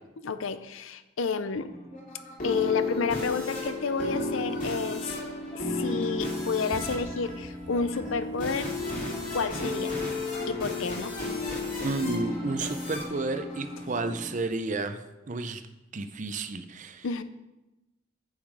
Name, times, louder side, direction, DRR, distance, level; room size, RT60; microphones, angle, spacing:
voice 1, 0.2-1.7 2.4-5.2 5.5-8.7 9.3-10.0 10.4-11.1 17.0-17.2, left 5 dB, 75° left, 12 dB, 0.6 m, -30 dB
sound 1, 1.7-14.4, left 2 dB, 40° left, 2.8 m, -33 dB
sound 2, 5.0-5.1 5.7-10.0, equal, 75° right, 2.3 m, -48 dB
voice 2, 11.8-15.6 15.9-17.0, right 3 dB, 35° right, 8 dB, 0.5 m, -32 dB
8.2 x 7.0 x 4.9 m, 1.0 s
head